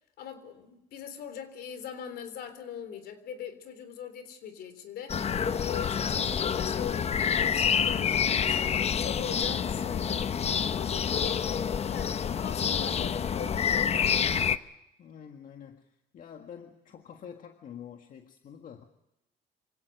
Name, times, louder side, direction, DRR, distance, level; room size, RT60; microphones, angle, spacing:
voice 1, 0.2-5.2 5.6-10.3 10.7-11.5 11.8-14.3, left 8 dB, 70° left, 3.7 m, -41 dB
sound 1, 5.1-14.6, left 7 dB, 40° left, 0.9 m, -28 dB
voice 2, 11.1-11.5 15.0-18.8, left 8 dB, 55° left, 1.8 m, -47 dB
26.5 x 17.5 x 6.6 m
cardioid pair, 110°, 17 cm